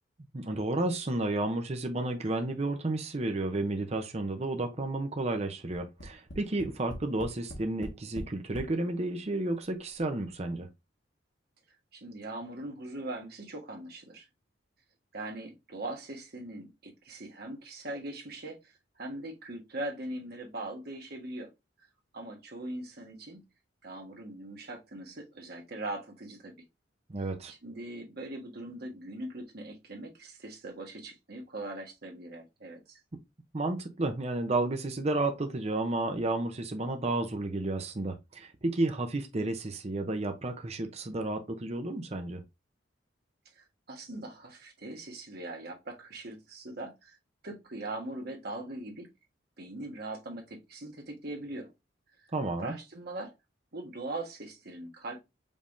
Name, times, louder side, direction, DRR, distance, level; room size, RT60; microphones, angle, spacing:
voice 1, 0.3-10.7 27.1-27.5 33.5-42.4 52.3-52.7, right 2 dB, 35° right, 0.7 m, -32 dB
Tap, 5.7-8.8 9.6-9.7 10.0-10.1, equal, 70° left, 1.4 m, -42 dB
voice 2, 11.9-14.3 15.1-21.5 22.1-23.4 23.8-26.5 27.5-33.0 43.6-47.2 47.4-49.1 49.6-51.7 52.2-52.3 52.6-53.3 53.7-55.2, right 2 dB, 55° right, 1.4 m, -41 dB
5.3 x 3.4 x 2.6 m
head